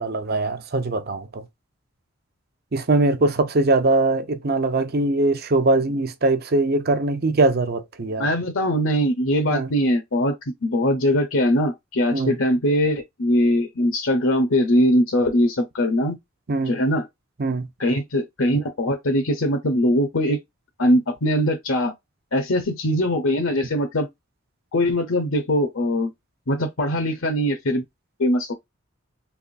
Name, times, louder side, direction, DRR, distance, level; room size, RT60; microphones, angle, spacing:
voice 1, 0.0-1.5 2.7-8.3 9.5-9.7 12.1-12.4 16.5-16.8 17.4-17.7, right 2 dB, 45° right, 0.6 m, -21 dB
voice 2, 8.2-10.4 10.6-16.2 16.7-17.1 17.8-20.4 20.8-21.9 22.3-24.1 24.7-26.1 26.5-27.8 28.2-28.5, equal, 65° left, 0.8 m, -21 dB
3.5 x 3.0 x 2.5 m
head